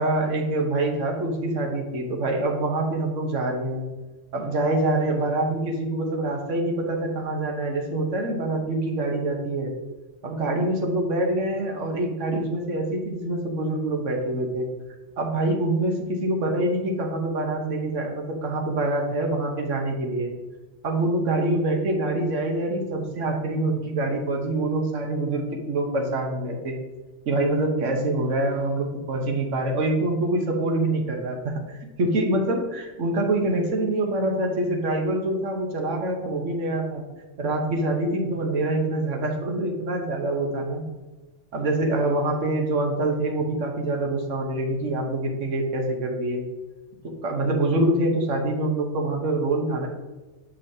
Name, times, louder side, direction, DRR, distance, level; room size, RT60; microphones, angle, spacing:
voice 1, 0.0-3.8 4.3-9.7 10.2-14.7 15.2-20.3 20.8-26.7 27.3-37.0 37.4-40.8 41.5-46.4 47.0-49.9, right 2 dB, 80° right, 2 dB, 1.3 m, -25 dB
7.1 x 5.5 x 2.7 m, 1.2 s
omnidirectional pair, 1.3 m